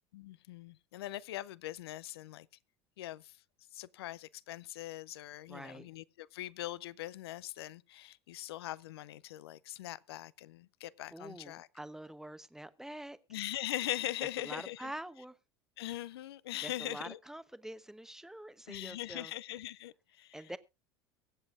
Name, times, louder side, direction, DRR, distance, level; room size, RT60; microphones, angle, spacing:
voice 1, 0.1-2.5 3.0-3.4 3.7-11.7 13.3-14.9 15.8-17.2 18.7-20.4, left 15 dB, 75° left, 0.5 m, -41 dB
voice 2, 5.5-5.9 11.1-13.2 14.4-15.4 16.6-19.3 20.3-20.6, right 1 dB, 5° right, 0.9 m, -46 dB
23.5 x 7.8 x 2.5 m
hypercardioid pair, 80°, 13 cm